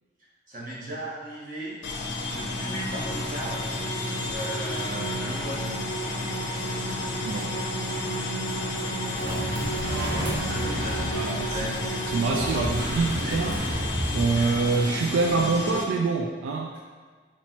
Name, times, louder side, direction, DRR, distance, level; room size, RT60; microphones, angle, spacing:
voice 1, 0.5-1.8 2.3-3.7 4.3-5.8 8.3-8.6 9.2-11.8 12.3-12.7 13.2-13.4 14.3-14.6 16.7-16.9, right 1 dB, 45° right, -7 dB, 1.1 m, -37 dB
sound 1, 1.8-15.8, left 2 dB, 80° left, 0.6 m, -32 dB
sound 2, 2.1-12.9, right 2 dB, 35° left, 0.4 m, -35 dB
voice 2, 7.2-7.6 11.1-11.7 12.1-13.6 14.1-16.7, right 4 dB, 90° right, 1 dB, 0.3 m, -25 dB
sound 3, 9.1-14.8, equal, 70° right, 1.0 m, -32 dB
4.5 x 3.0 x 2.9 m, 1.5 s
head